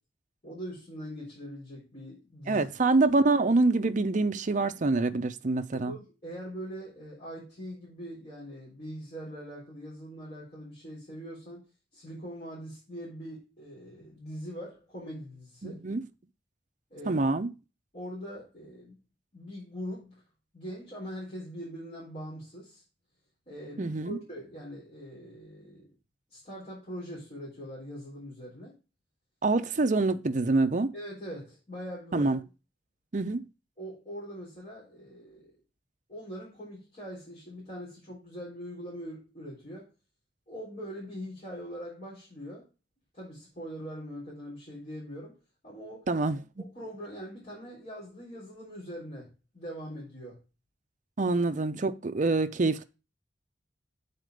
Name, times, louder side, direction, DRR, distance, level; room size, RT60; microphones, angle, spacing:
voice 1, 0.4-2.7 5.7-15.8 16.9-17.3 17.9-19.0 19.3-20.2 20.5-22.8 23.5-25.9 26.3-28.8 30.9-32.3 33.8-35.5 36.1-39.9 40.5-42.7 43.1-46.1 46.6-50.4, equal, 40° left, 3.5 m, -42 dB
voice 2, 2.5-5.9 15.6-16.0 17.1-17.5 23.8-24.2 29.4-30.9 32.1-32.4 33.1-33.5 46.1-46.4 51.2-52.8, right 3 dB, 45° right, 0.6 m, -26 dB
7.7 x 4.3 x 5.0 m
head